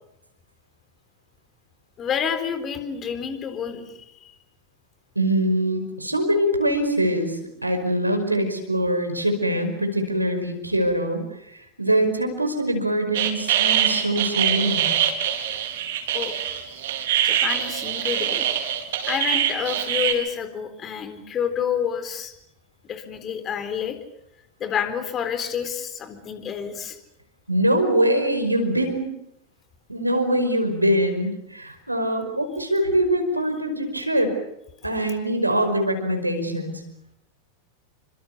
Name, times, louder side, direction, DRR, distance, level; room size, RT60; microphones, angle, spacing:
voice 1, 2.0-3.9 4.2-4.3 15.4-15.5 16.1-16.4 17.2-18.5 19.0-22.3 22.8-24.0 24.6-27.0, left 8 dB, 25° left, 9 dB, 4.0 m, -29 dB
voice 2, 5.2-14.9 27.5-29.1 29.9-34.3 34.8-36.8, right 1 dB, 85° right, 5 dB, 5.3 m, -23 dB
sound 1, 13.1-20.1, right 10 dB, 55° right, 4.4 m, -23 dB
29.0 x 25.5 x 7.0 m, 0.80 s
figure-of-eight pair, 90°, 0 cm